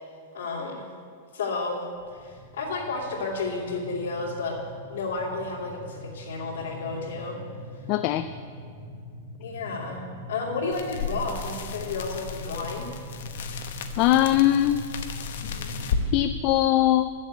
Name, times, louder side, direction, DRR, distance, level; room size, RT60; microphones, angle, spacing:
voice 1, 0.3-0.9 1.3-1.8 2.1-4.6 4.9-7.4 9.4-10.0 10.3-12.9, left 3 dB, 85° left, -9 dB, 2.8 m, -31 dB
sound 1, 2.0-16.2, equal, 45° right, 2.5 m, -43 dB
voice 2, 7.9-8.3 14.0-14.9 16.1-17.1, left 14 dB, 30° left, 10 dB, 0.3 m, -21 dB
sound 2, 10.7-16.1, left 6 dB, 65° left, 1.1 m, -34 dB
12.5 x 7.4 x 8.5 m, 2.3 s
supercardioid pair, 175°, 0 cm